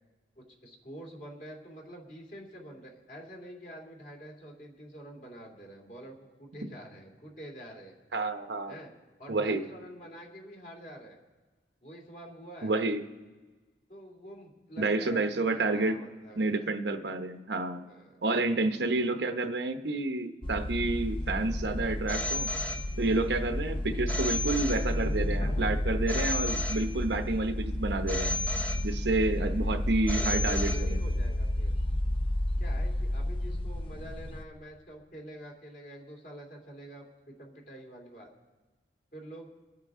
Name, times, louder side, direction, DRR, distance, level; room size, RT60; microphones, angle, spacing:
voice 1, 0.4-8.0 8.7-8.9 9.2-11.2 11.8-12.7 13.9-16.7 17.8-18.2 29.3-29.5 30.1-31.7 32.6-38.3 39.1-39.5, equal, 45° left, 0 dB, 2.5 m, -47 dB
voice 2, 8.1-8.7 9.3-9.6 12.6-13.0 14.8-16.0 16.4-17.8 18.2-22.5 23.0-28.3 28.8-31.0, right 2 dB, 80° right, 7 dB, 0.9 m, -29 dB
sound 1, 20.4-34.4, left 1 dB, 30° left, 0.6 m, -31 dB
Telephone, 22.1-23.3 24.1-25.3 26.1-27.3 28.1-29.3 30.1-31.3, left 2 dB, 10° left, 0.9 m, -35 dB
24.5 x 9.0 x 3.7 m, 1.3 s
head